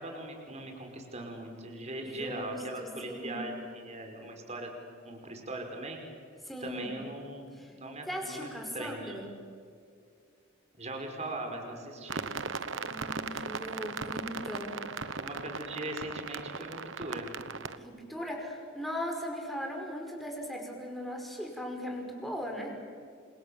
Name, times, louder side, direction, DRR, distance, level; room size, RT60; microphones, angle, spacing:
voice 1, 0.0-4.7 5.0-6.0 6.6-8.5 8.7-9.2 10.8-12.3 15.2-17.3, right 1 dB, 35° right, 3 dB, 5.2 m, -40 dB
voice 2, 2.1-3.5 6.4-6.9 7.6-7.7 8.1-9.3 12.8-15.3 17.8-22.7, equal, ahead, 1 dB, 5.5 m, -39 dB
sound 1, 12.1-17.8, right 4 dB, 65° right, 1.2 m, -38 dB
29.5 x 27.0 x 7.2 m, 2.3 s
head